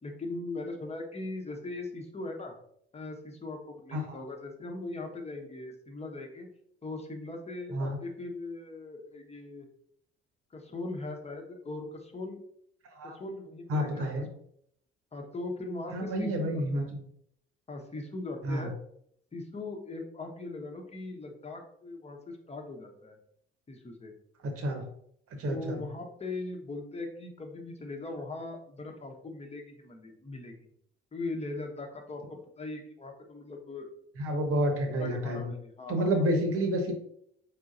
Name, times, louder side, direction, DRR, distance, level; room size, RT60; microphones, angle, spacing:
voice 1, 0.0-2.5 2.9-6.5 6.8-9.7 10.5-12.4 13.0-14.1 15.1-16.9 17.7-18.7 19.3-23.2 23.7-24.1 25.5-30.7 31.1-32.2 32.6-33.9 34.9-36.3, left 2 dB, 20° left, 2 dB, 1.0 m, -40 dB
voice 2, 13.7-14.3 15.9-17.0 18.4-18.7 24.4-24.8 25.4-25.8 34.2-35.5 35.9-36.9, equal, 50° right, 4 dB, 1.1 m, -29 dB
4.7 x 3.8 x 2.6 m, 0.70 s
figure-of-eight pair, 45°, 29 cm